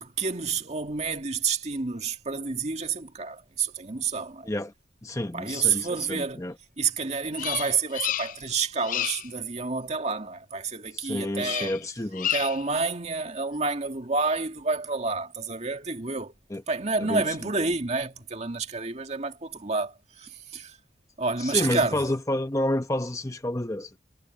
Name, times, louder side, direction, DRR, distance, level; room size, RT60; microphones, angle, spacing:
voice 1, 0.0-4.5 5.3-6.4 6.8-11.7 12.3-16.3 16.7-20.8 21.2-22.0, right 4 dB, 40° right, 2.1 m, -29 dB
voice 2, 5.0-6.5 10.9-12.3 16.5-16.6 17.0-17.2 21.4-24.0, left 1 dB, 20° left, 1.0 m, -29 dB
Bird vocalization bird call bird song, 7.3-8.5 8.8-9.3 11.4-11.8 12.1-12.7, left 11 dB, 50° left, 0.4 m, -31 dB
head